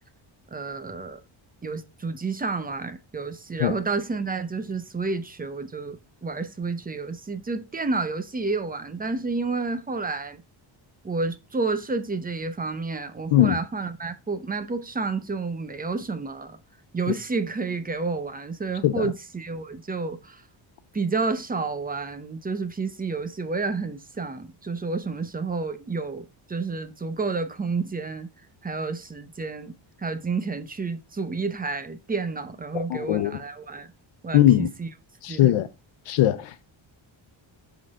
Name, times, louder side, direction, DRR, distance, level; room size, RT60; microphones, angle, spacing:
voice 1, 0.5-1.2 1.6-10.4 11.0-16.6 16.9-20.4 20.9-28.3 28.6-33.9 34.2-34.9 35.3-35.5, right 4 dB, 20° right, 0.6 m, -30 dB
voice 2, 32.7-33.4 34.3-34.7 35.2-35.7 36.1-36.7, left 13 dB, 90° left, 0.7 m, -20 dB
7.5 x 3.9 x 4.7 m
wide cardioid pair, 160°, 49 cm